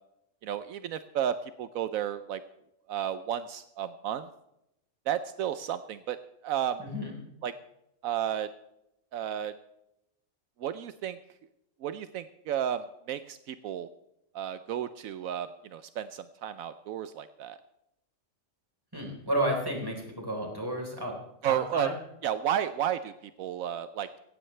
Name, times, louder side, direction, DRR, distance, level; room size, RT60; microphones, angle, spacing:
voice 1, 0.4-2.4 2.9-4.3 5.1-6.2 6.4-6.8 7.4-7.5 8.0-8.5 9.1-9.5 10.6-11.2 11.8-13.9 14.3-17.6 21.4-21.9 22.2-24.2, right 10 dB, 80° right, 12 dB, 1.1 m, -32 dB
voice 2, 6.8-7.1 18.9-21.1 21.5-21.9, right 1 dB, 15° right, 1 dB, 4.0 m, -32 dB
17.0 x 15.5 x 3.3 m, 0.83 s
omnidirectional pair, 1.4 m